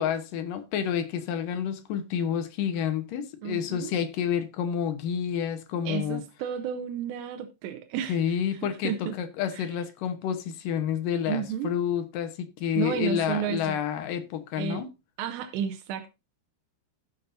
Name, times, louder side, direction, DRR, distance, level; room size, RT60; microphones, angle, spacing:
voice 1, 0.0-6.2 8.1-14.9, left 9 dB, 75° left, 2.1 m, -29 dB
voice 2, 3.4-3.9 5.9-9.2 9.5-9.7 11.3-11.7 12.8-13.8 14.6-14.8 15.2-16.1, right 8 dB, 80° right, 2.9 m, -32 dB
18.0 x 6.9 x 2.6 m
omnidirectional pair, 5.1 m